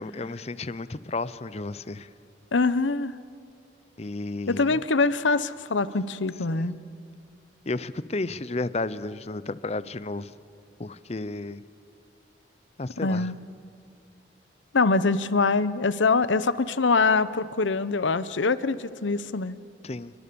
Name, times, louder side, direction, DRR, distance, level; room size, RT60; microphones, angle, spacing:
voice 1, 0.0-2.1 4.0-4.7 6.5-6.7 7.7-10.3 10.8-11.6 12.8-13.3 19.8-20.1, left 2 dB, 35° left, 16 dB, 0.6 m, -32 dB
voice 2, 2.5-3.1 4.5-6.8 13.0-13.3 14.7-19.6, left 3 dB, 90° left, 15 dB, 0.9 m, -24 dB
28.5 x 23.0 x 6.9 m, 2.3 s
head